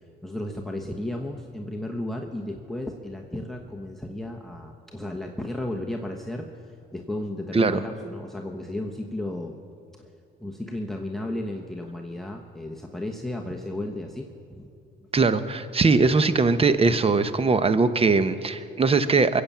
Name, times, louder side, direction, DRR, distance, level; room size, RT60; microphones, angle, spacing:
voice 1, 0.2-6.5 6.9-9.6 10.4-14.7, left 1 dB, ahead, 3 dB, 1.1 m, -34 dB
voice 2, 15.1-19.4, right 4 dB, 30° right, 12 dB, 0.9 m, -21 dB
22.0 x 8.4 x 7.3 m, 2.5 s
cardioid pair, 90°, 20 cm